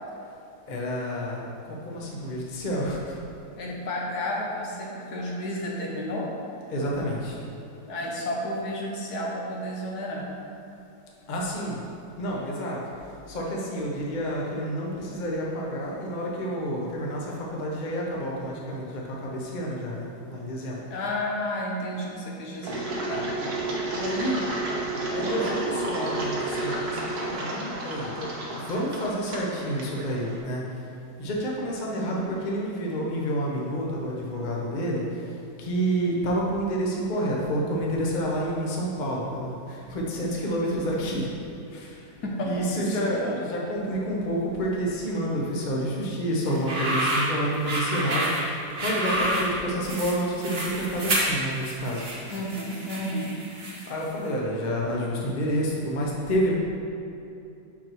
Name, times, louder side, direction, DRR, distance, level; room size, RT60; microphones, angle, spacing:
voice 1, 0.7-3.2 6.7-7.4 11.3-11.8 12.1-12.8 13.3-20.8 23.9-24.4 25.1-30.8 31.2-41.3 41.7-42.1 42.4-48.4 48.8-52.3 53.8-56.5, equal, 35° left, -3 dB, 0.9 m, -29 dB
voice 2, 3.6-6.3 7.9-10.3 20.9-23.3 32.0-32.3 42.2-43.4 52.3-53.4, left 1 dB, 70° left, -2 dB, 1.5 m, -32 dB
Engine, 22.6-30.4, right 2 dB, 70° right, 1.6 m, -31 dB
sound 1, 46.5-54.0, right 1 dB, 40° right, 1.3 m, -29 dB
6.1 x 6.0 x 4.6 m, 2.7 s
omnidirectional pair, 1.8 m